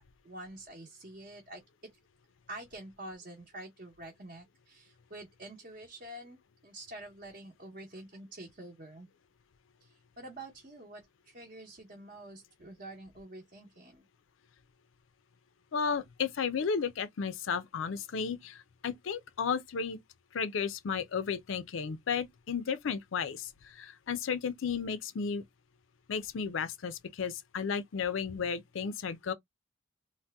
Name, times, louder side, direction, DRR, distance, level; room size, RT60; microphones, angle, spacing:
voice 1, 0.2-1.6 2.5-9.1 9.8-14.1, right 1 dB, 40° right, 0.7 m, -47 dB
voice 2, 15.7-20.0 20.3-25.4 26.1-29.3, left 6 dB, 75° left, 0.5 m, -33 dB
2.7 x 2.1 x 3.4 m
head